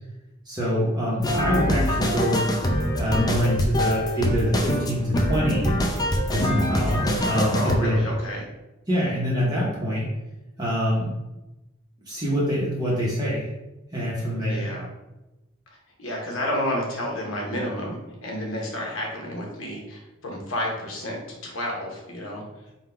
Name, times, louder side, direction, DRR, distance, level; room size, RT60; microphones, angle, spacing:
voice 1, 0.4-2.4 3.0-5.7 6.3-8.1 8.9-10.1 10.6-11.1 12.1-13.5 13.9-14.7, equal, 20° right, -6 dB, 0.8 m, -25 dB
sound 1, 1.2-7.8, equal, 20° left, 0.4 m, -24 dB
voice 2, 7.3-8.5 14.5-14.9 16.0-22.4, left 1 dB, 65° left, -1 dB, 1.0 m, -30 dB
3.8 x 2.2 x 4.3 m, 0.99 s
head